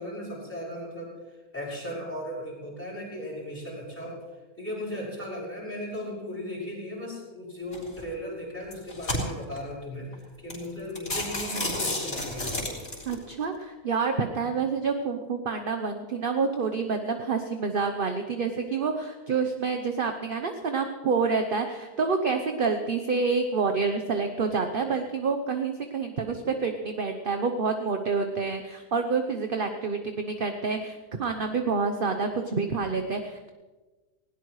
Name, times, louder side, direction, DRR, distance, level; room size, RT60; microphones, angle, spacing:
voice 1, 0.0-4.2 4.6-12.5, equal, 5° left, -6 dB, 6.4 m, -37 dB
sound 1, 7.7-8.0 8.6-9.6 10.1-10.2 10.5-10.7 11.0-13.1, left 1 dB, 40° left, 4.2 m, -31 dB
voice 2, 13.1-33.5, right 4 dB, 40° right, 5 dB, 0.9 m, -28 dB
19.5 x 17.5 x 3.2 m, 1.2 s
omnidirectional pair, 1.7 m